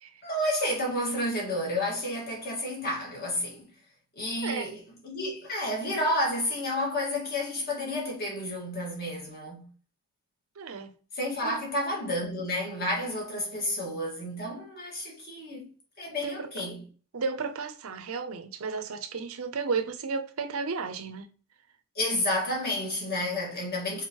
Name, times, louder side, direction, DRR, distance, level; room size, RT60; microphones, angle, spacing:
voice 1, 0.2-3.6 4.2-9.7 11.1-15.7 16.0-16.8 22.0-24.1, left 1 dB, 45° left, 1.8 m, -31 dB
voice 2, 10.6-10.9 11.4-11.6 16.2-16.5 17.1-21.3, right 5 dB, 70° right, 0.6 m, -33 dB
4.5 x 4.0 x 3.0 m
head